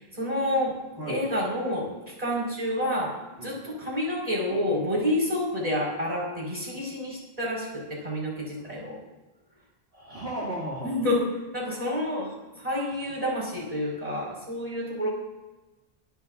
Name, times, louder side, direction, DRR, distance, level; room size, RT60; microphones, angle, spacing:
voice 1, 0.0-0.8 1.1-3.1 3.4-9.0 10.8-11.2 11.5-15.1, left 1 dB, 35° right, -3 dB, 5.4 m, -29 dB
voice 2, 1.0-1.3 3.4-3.5 4.5-4.7 9.9-11.0, right 1 dB, 65° right, -6 dB, 3.0 m, -35 dB
24.5 x 12.0 x 2.7 m, 1.1 s
omnidirectional pair, 1.1 m